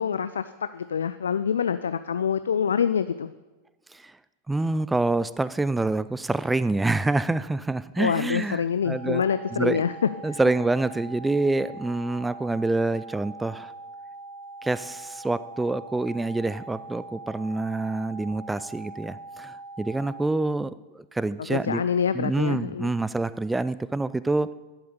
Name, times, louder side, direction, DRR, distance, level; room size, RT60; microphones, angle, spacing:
voice 1, 0.0-3.3 8.0-9.9 10.2-10.4 21.5-22.9, left 7 dB, 70° left, 12 dB, 0.4 m, -26 dB
voice 2, 4.5-9.2 9.5-9.8 10.2-13.7 14.6-21.8 22.1-24.5, right 2 dB, 10° right, 16 dB, 0.4 m, -26 dB
sound 1, 8.8-20.2, right 2 dB, 65° right, 3.3 m, -42 dB
11.0 x 8.7 x 7.0 m, 1.1 s
figure-of-eight pair, 90°, 0 cm